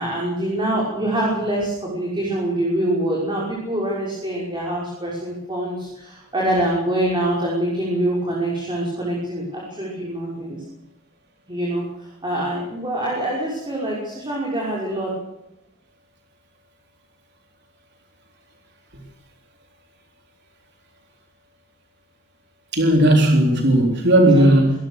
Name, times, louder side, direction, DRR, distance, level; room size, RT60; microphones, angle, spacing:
voice 1, 0.0-10.6 11.5-11.8 12.2-15.1 24.3-24.5, right 1 dB, 25° right, -4 dB, 5.9 m, -25 dB
voice 2, 22.7-24.7, right 1 dB, 55° right, 2 dB, 3.9 m, -15 dB
25.5 x 19.0 x 6.8 m, 0.85 s
head